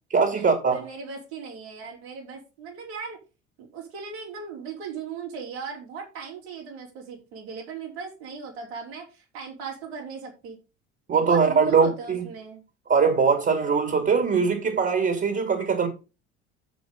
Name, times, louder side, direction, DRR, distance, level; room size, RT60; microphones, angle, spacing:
voice 1, 0.1-0.8 11.1-12.2 12.9-15.9, right 5 dB, 30° right, 2.6 m, -21 dB
voice 2, 0.7-3.2 3.6-10.6 11.2-12.6, right 6 dB, 70° right, 4.5 m, -38 dB
14.5 x 5.1 x 3.9 m
figure-of-eight pair, 60°, 34 cm